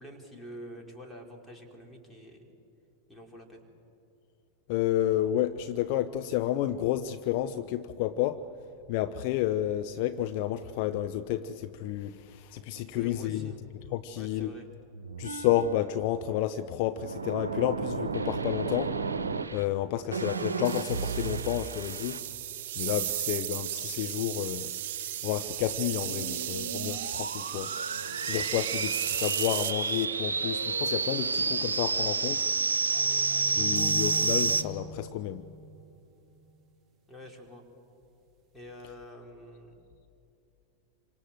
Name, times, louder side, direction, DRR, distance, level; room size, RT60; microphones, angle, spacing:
voice 1, 0.0-2.5 3.1-3.6 12.9-13.6 14.1-14.7 37.1-37.6 38.5-39.8, equal, 5° left, 4.8 m, -47 dB
voice 2, 4.7-8.5 8.9-13.5 13.9-14.5 15.2-19.0 19.5-22.2 22.8-24.7 25.2-27.7 28.3-32.5 33.5-35.5, left 12 dB, 45° left, 0.8 m, -30 dB
sound 1, 14.9-15.9 17.0-19.6 20.1-22.2 25.8-34.6, right 4 dB, 70° right, 1.2 m, -31 dB
sound 2, 20.6-30.0, right 12 dB, 55° right, 0.6 m, -35 dB
sound 3, 32.9-36.3, equal, 20° right, 3.5 m, -42 dB
28.0 x 25.5 x 7.8 m
figure-of-eight pair, 90°, 0 cm